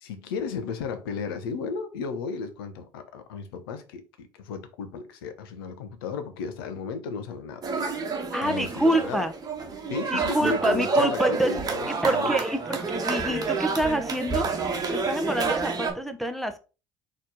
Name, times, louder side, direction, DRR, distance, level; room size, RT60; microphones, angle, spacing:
voice 1, 0.0-7.7 8.4-9.3 9.9-12.4, left 5 dB, 75° left, 0.7 m, -34 dB
sound 1, 7.6-15.9, right 4 dB, 30° right, 1.1 m, -28 dB
voice 2, 8.3-9.3 10.1-11.5 11.9-12.8 13.0-14.5 14.9-16.6, right 1 dB, ahead, 0.7 m, -26 dB
4.1 x 3.1 x 3.8 m
hypercardioid pair, 60°, 12 cm